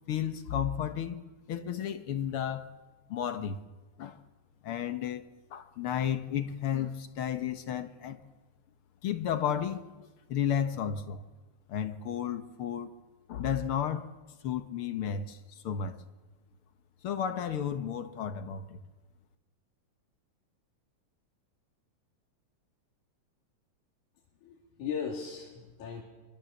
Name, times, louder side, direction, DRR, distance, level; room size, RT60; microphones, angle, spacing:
voice 1, 0.1-1.2 1.5-2.7 3.1-3.6 4.0-4.2 4.6-5.2 5.5-8.2 9.0-11.2 11.7-12.9 13.3-14.1 14.4-15.4 15.6-16.0 17.0-18.8, left 9 dB, 60° left, 1.7 m, -33 dB
voice 2, 24.4-26.0, left 6 dB, 85° left, 3.9 m, -37 dB
24.0 x 23.5 x 7.2 m
omnidirectional pair, 3.3 m